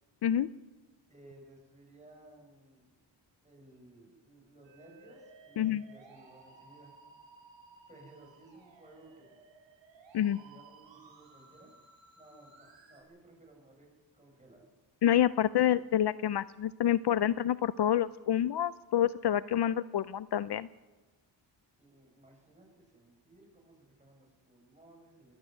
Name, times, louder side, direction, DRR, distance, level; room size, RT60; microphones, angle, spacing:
voice 1, 1.1-2.9 3.4-6.9 7.9-9.3 10.2-11.7 12.2-13.9 14.1-14.7 21.8-25.4, right 2 dB, 15° right, 0 dB, 7.9 m, -58 dB
Musical instrument, 4.6-13.0, right 4 dB, 70° right, 4.3 m, -58 dB
voice 2, 15.0-20.7, left 11 dB, 55° left, 16 dB, 0.6 m, -28 dB
21.0 x 13.5 x 9.4 m, 1.2 s
wide cardioid pair, 120°, 47 cm